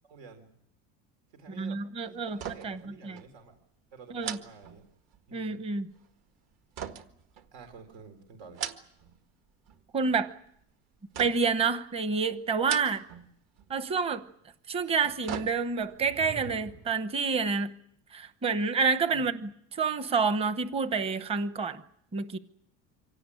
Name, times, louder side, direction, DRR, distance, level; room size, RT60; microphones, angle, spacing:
voice 1, 0.0-0.5 1.3-3.6 3.9-4.8 5.3-5.6 7.5-8.6 19.1-19.3, right 4 dB, 90° right, 6 dB, 3.9 m, -50 dB
voice 2, 1.6-3.2 4.1-4.4 5.3-5.9 9.9-10.3 11.2-13.0 13.7-14.2 14.7-17.7 18.1-21.8 22.1-22.4, right 5 dB, 20° right, 12 dB, 0.9 m, -28 dB
sound 1, 2.3-2.9 3.2-3.3 4.2-5.3 6.8-7.9 8.4-9.2 9.5-10.1 11.1-11.7 12.5-13.3 13.6-13.7 14.8-16.0 16.4-16.5, right 8 dB, 50° right, 1.7 m, -40 dB
sound 2, 15.9-17.1, right 4 dB, 70° right, 6.3 m, -45 dB
25.0 x 17.5 x 9.9 m, 0.71 s
cardioid pair, 170°, 32 cm